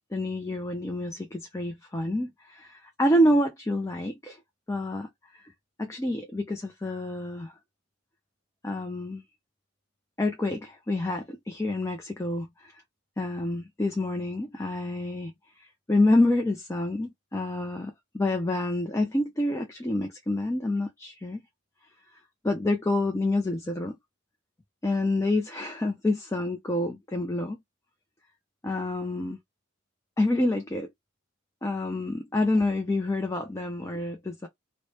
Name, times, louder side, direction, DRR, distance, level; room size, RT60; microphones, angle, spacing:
voice 1, 0.1-4.4 4.7-5.4 5.8-7.5 8.6-9.2 10.2-12.8 13.2-21.4 22.4-24.0 24.8-27.6 28.6-29.4 30.2-30.9 31.6-34.5, left 1 dB, 15° left, 0.4 m, -28 dB
3.2 x 2.1 x 4.1 m
head